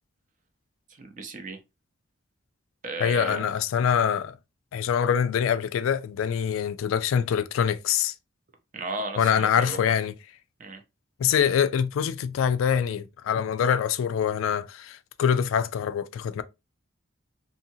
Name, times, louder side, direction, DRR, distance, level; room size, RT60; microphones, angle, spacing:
voice 1, 1.0-1.6 2.8-3.5 8.7-9.8 10.6-10.8, right 2 dB, 40° right, 0.5 m, -35 dB
voice 2, 3.0-4.4 4.7-8.1 9.2-10.1 11.2-16.4, left 8 dB, 85° left, 0.3 m, -24 dB
2.7 x 2.7 x 2.7 m
head